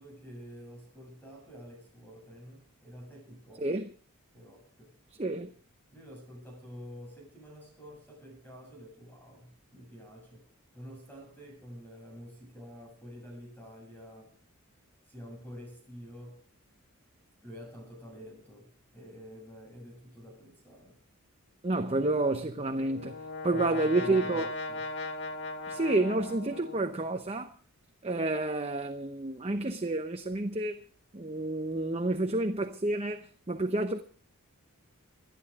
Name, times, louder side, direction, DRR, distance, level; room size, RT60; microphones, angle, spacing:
voice 1, 0.0-3.7 4.3-5.0 5.9-10.5 10.7-14.4 15.1-16.4 17.4-21.0 23.5-24.9, equal, 10° left, 7.6 m, -48 dB
voice 2, 3.6-3.9 5.2-5.5 21.6-23.2 23.4-24.5 25.7-27.5 28.0-30.8 31.1-34.0, right 2 dB, 25° right, 0.8 m, -29 dB
Brass instrument, 22.4-27.2, left 2 dB, 50° left, 1.9 m, -39 dB
26.5 x 11.0 x 3.6 m
head